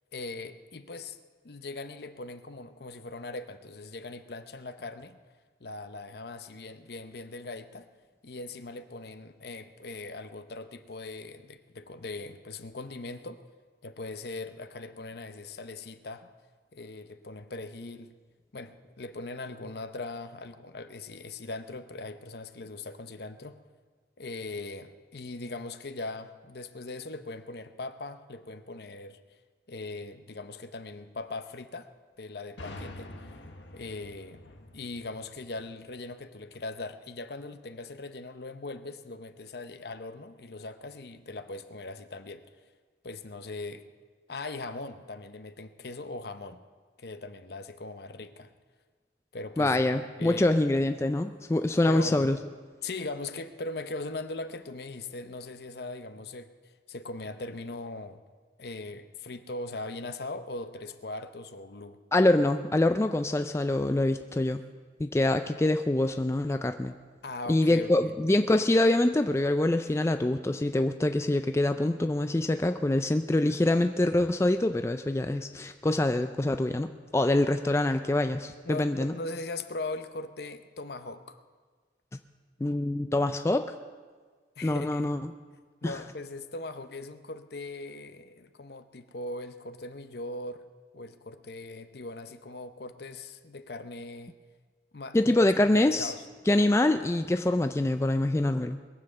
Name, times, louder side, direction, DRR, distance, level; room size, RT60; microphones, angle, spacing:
voice 1, 0.1-1.2 1.4-5.2 5.6-7.9 8.2-13.4 13.8-16.3 16.7-18.1 18.5-23.6 24.2-29.2 29.7-31.9 32.2-33.2 33.5-34.4 34.7-42.4 43.0-43.9 44.3-46.6 47.0-48.5 49.3-49.8 50.2-50.5 51.9-52.3 52.8-56.5 56.9-58.2 58.6-62.0 67.2-68.1 78.6-81.4 84.6-85.1 85.8-90.6 90.9-94.3 94.9-96.2, left 2 dB, 60° left, 10 dB, 0.7 m, -40 dB
sound 1, 32.6-36.2, left 1 dB, 80° left, 1.3 m, -46 dB
voice 2, 49.6-52.4 62.1-64.6 65.0-66.9 67.5-79.1 82.6-83.7 84.6-85.2 85.8-85.9 95.1-96.1 96.5-98.8, left 1 dB, 15° left, 8 dB, 0.3 m, -25 dB
21.5 x 7.6 x 6.7 m, 1.5 s
head